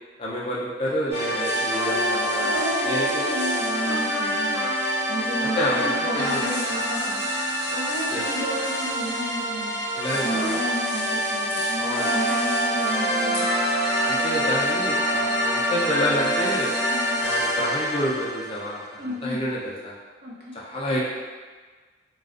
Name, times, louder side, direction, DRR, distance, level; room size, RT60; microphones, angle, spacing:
voice 1, 0.2-2.5 2.8-3.2 5.4-6.4 8.1-8.2 9.9-10.4 11.8-12.2 14.0-16.7 17.2-18.8 19.2-19.9 20.5-21.0, equal, 30° left, -6 dB, 0.4 m, -28 dB
sound 1, 1.1-18.9, equal, 15° right, 0.9 m, -27 dB
sound 2, 1.4-17.5, equal, 80° right, 1.2 m, -40 dB
sound 3, 1.7-9.2 10.3-10.7 11.9-17.2, right 1 dB, 80° left, 0.6 m, -31 dB
voice 2, 2.4-13.6 16.9-17.1 19.0-19.4 20.2-20.5, right 1 dB, 55° right, -5 dB, 0.6 m, -32 dB
2.4 x 2.2 x 2.4 m, 1.4 s
head